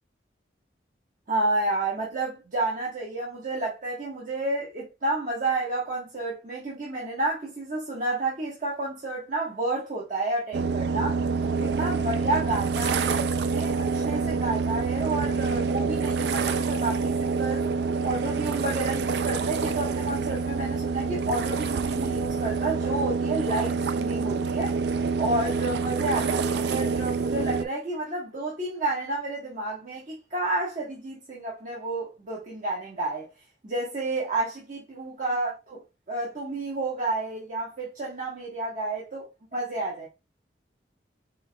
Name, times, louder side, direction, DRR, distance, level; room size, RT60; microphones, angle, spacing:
voice 1, 1.3-11.2 11.6-17.7 18.0-24.8 25.2-33.3 33.6-35.5 36.1-39.2 39.5-40.1, right 2 dB, 45° right, 1.2 m, -30 dB
sound 1, 10.5-27.6, right 4 dB, 65° right, 0.4 m, -27 dB
4.5 x 4.4 x 2.2 m
head